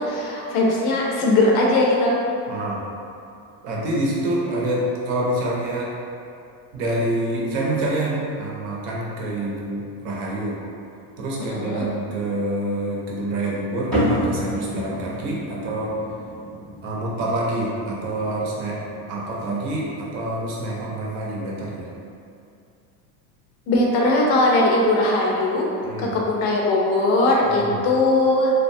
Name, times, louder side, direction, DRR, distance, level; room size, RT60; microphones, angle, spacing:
voice 1, 0.0-2.2 11.5-11.8 23.7-25.7 26.0-28.5, left 2 dB, 70° left, -2 dB, 0.7 m, -19 dB
voice 2, 2.5-2.8 3.6-5.9 6.7-10.6 11.2-16.0 16.8-21.9 25.8-26.1 27.6-27.8, right 1 dB, 55° right, -4 dB, 0.6 m, -27 dB
sound 1, 13.9-20.6, equal, ahead, 0.4 m, -30 dB
2.7 x 2.3 x 2.6 m, 2.5 s
cardioid pair, 165°, 48 cm